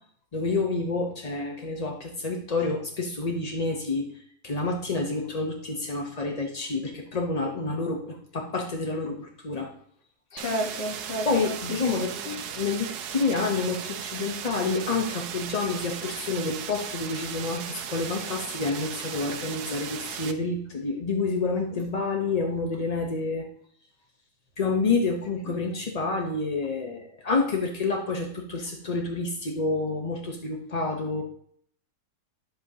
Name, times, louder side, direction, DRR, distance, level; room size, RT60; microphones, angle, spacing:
voice 1, 0.3-9.7 11.2-12.1 12.5-23.4 24.6-31.2, left 3 dB, 40° left, 1 dB, 0.6 m, -28 dB
voice 2, 10.3-11.6 11.8-12.4 25.5-25.6, left 1 dB, 85° left, 2 dB, 2.1 m, -32 dB
sound 1, 10.4-20.3, right 8 dB, 75° right, 1.2 m, -36 dB
10.5 x 7.8 x 2.8 m, 0.63 s
omnidirectional pair, 1.7 m